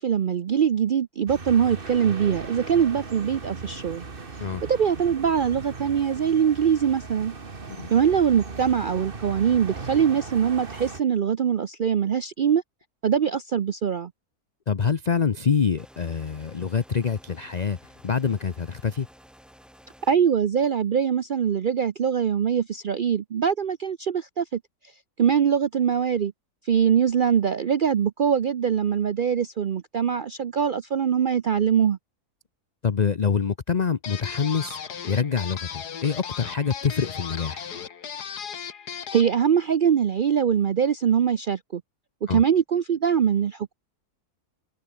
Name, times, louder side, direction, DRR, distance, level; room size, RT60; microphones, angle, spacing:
voice 1, 0.0-4.0 4.7-7.3 7.9-12.6 13.0-14.1 20.1-24.6 25.2-26.3 26.6-32.0 39.1-41.8 42.2-43.7, right 8 dB, 75° right, 0.4 m, -23 dB
sound 1, 1.3-11.0, right 4 dB, 35° right, 1.9 m, -38 dB
voice 2, 14.7-17.8 18.0-19.1 32.8-34.8 35.1-37.7 42.3-42.4, left 6 dB, 35° left, 0.7 m, -25 dB
sound 2, 15.8-20.2, equal, ahead, 4.3 m, -52 dB
sound 3, 34.0-39.4, left 7 dB, 90° left, 2.1 m, -36 dB
omnidirectional pair, 1.7 m